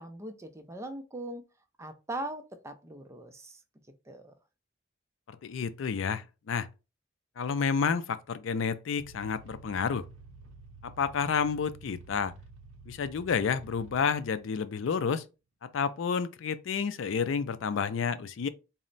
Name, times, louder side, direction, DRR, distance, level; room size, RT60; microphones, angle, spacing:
voice 1, 0.0-1.4 1.8-3.6 4.1-4.3, right 1 dB, 15° right, 0.5 m, -40 dB
voice 2, 5.3-6.7 7.4-10.1 10.8-12.3 12.9-15.2 15.6-18.5, left 6 dB, 70° left, 0.4 m, -30 dB
sound 1, 9.0-14.5, right 3 dB, 85° right, 0.6 m, -51 dB
4.2 x 2.0 x 3.8 m
head